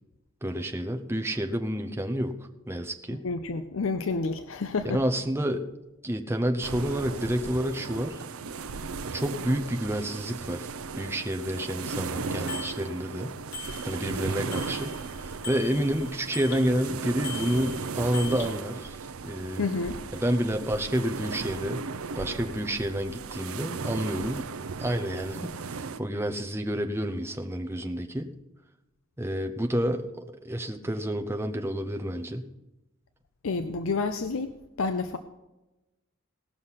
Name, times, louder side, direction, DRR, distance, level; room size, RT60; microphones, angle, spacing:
voice 1, 0.4-2.4 2.7-3.2 4.9-5.6 6.0-8.2 9.1-10.7 10.9-13.3 13.8-19.7 20.2-21.8 22.2-24.5 24.8-28.3 29.2-32.5, equal, 10° right, 4 dB, 0.8 m, -29 dB
voice 2, 3.2-5.0 19.6-20.0 33.4-35.2, left 4 dB, 65° left, 9 dB, 0.6 m, -29 dB
sound 1, 6.6-26.0, right 4 dB, 80° right, 0.6 m, -36 dB
Bicycle bell, 12.5-12.8 13.5-14.2 14.5-16.7 17.2-18.5, left 4 dB, 45° left, 2.5 m, -40 dB
18.0 x 6.5 x 5.7 m, 1.0 s
head